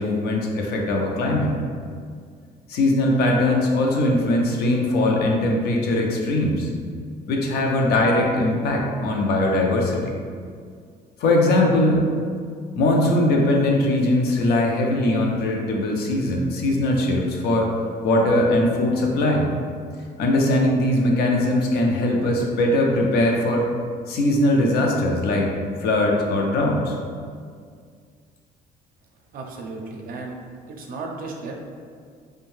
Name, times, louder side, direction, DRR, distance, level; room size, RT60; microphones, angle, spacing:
voice 1, 0.0-1.5 2.7-6.7 7.3-10.1 11.2-12.1 12.7-17.7 18.0-19.5 20.2-23.7 24.1-25.5 25.8-27.0, left 1 dB, 70° left, 0 dB, 0.5 m, -20 dB
voice 2, 29.3-30.4 30.7-31.6, right 3 dB, 55° right, 1 dB, 0.5 m, -34 dB
2.6 x 2.2 x 3.1 m, 2.1 s
cardioid pair, 110°, 17 cm